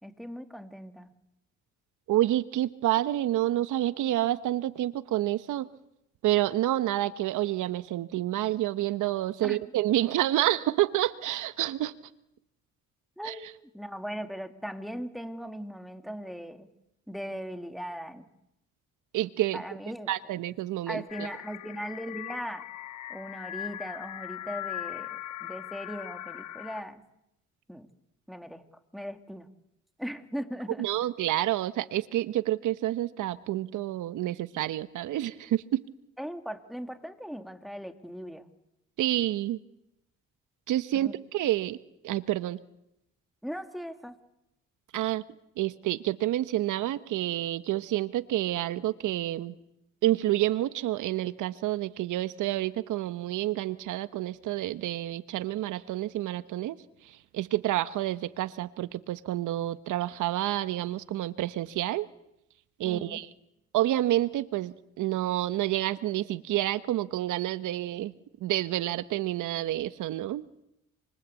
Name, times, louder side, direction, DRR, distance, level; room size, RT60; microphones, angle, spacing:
voice 1, 0.0-1.1 9.4-9.6 13.2-13.5 13.7-16.7 17.1-18.3 19.5-20.4 20.9-22.6 23.1-27.0 27.7-27.9 28.3-28.6 28.9-29.5 30.0-30.9 36.2-38.5 40.9-41.1 43.4-44.2 62.8-63.2, equal, ahead, 7 dB, 2.9 m, -39 dB
voice 2, 2.1-5.7 6.2-11.9 13.2-13.3 19.1-19.6 20.1-21.3 30.8-35.8 39.0-39.6 40.7-41.8 42.0-42.6 44.9-45.2 45.6-49.5 50.0-56.8 57.3-62.1 62.8-63.3 63.7-68.1 68.4-70.5, right 14 dB, 85° right, 14 dB, 1.1 m, -28 dB
sound 1, 21.1-26.8, left 13 dB, 70° left, 1.0 m, -40 dB
28.0 x 25.5 x 8.4 m, 0.83 s
cardioid pair, 90°, 30 cm